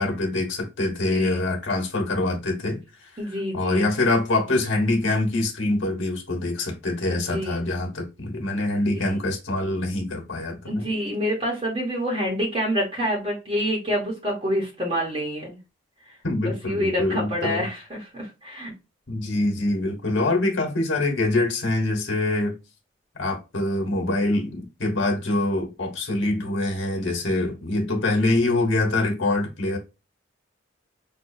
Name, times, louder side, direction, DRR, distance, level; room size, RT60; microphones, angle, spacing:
voice 1, 0.0-2.8 3.5-10.8 16.2-17.7 19.1-22.5 23.2-29.8, left 2 dB, 90° left, 1.3 m, -24 dB
voice 2, 0.9-1.4 3.2-3.9 7.1-7.6 9.1-9.2 10.6-15.6 16.4-18.7, equal, 30° right, 1.1 m, -27 dB
5.5 x 2.5 x 2.6 m
head